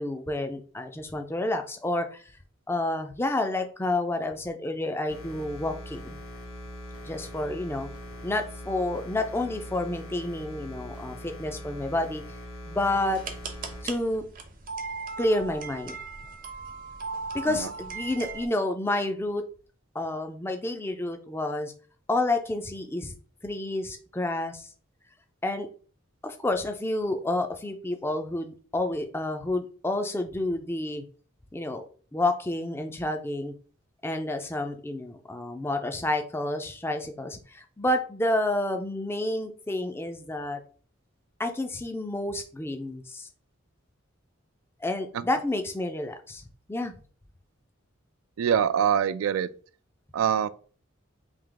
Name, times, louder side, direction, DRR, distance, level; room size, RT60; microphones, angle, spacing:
voice 1, 0.0-2.2 2.7-6.2 7.0-7.9 8.2-12.2 12.7-13.2 13.8-14.2 15.2-16.0 17.3-19.4 19.9-21.7 22.1-23.1 23.4-24.7 25.4-25.7 26.2-31.0 31.5-31.8 32.1-33.5 34.0-40.6 41.4-43.3 44.8-46.4 46.7-46.9, left 1 dB, 10° left, 0.3 m, -29 dB
sound 1, 5.1-13.8, equal, 75° left, 1.8 m, -42 dB
sound 2, 13.1-18.5, right 4 dB, 40° right, 0.6 m, -38 dB
voice 2, 48.4-49.5 50.1-50.5, right 8 dB, 80° right, 0.3 m, -24 dB
3.4 x 2.7 x 3.8 m
head